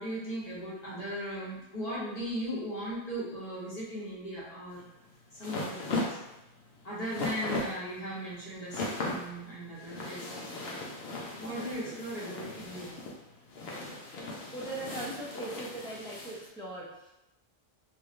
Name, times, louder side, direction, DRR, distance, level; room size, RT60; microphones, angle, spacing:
voice 1, 0.0-4.8 5.4-6.2 6.8-10.4 11.4-13.0, equal, 40° left, -7 dB, 1.2 m, -38 dB
sound 1, 4.7-16.4, left 2 dB, 80° left, 1.0 m, -38 dB
voice 2, 14.5-16.9, right 2 dB, 5° left, -6 dB, 0.6 m, -39 dB
3.1 x 2.8 x 2.5 m, 0.91 s
omnidirectional pair, 1.0 m